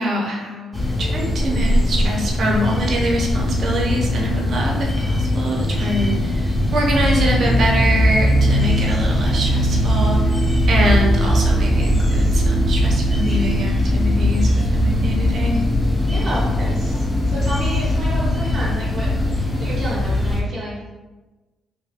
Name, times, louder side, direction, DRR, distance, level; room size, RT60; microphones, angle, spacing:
voice 1, 0.0-10.3 10.7-15.6, right 1 dB, 55° right, -1 dB, 0.6 m, -24 dB
sound 1, 0.7-20.4, left 1 dB, 5° left, 0.5 m, -19 dB
sound 2, 0.9-19.9, left 1 dB, 45° left, 0.8 m, -34 dB
voice 2, 16.1-20.7, equal, 35° right, -8 dB, 0.9 m, -31 dB
2.6 x 2.6 x 2.4 m, 1.2 s
cardioid pair, 90°, 0 cm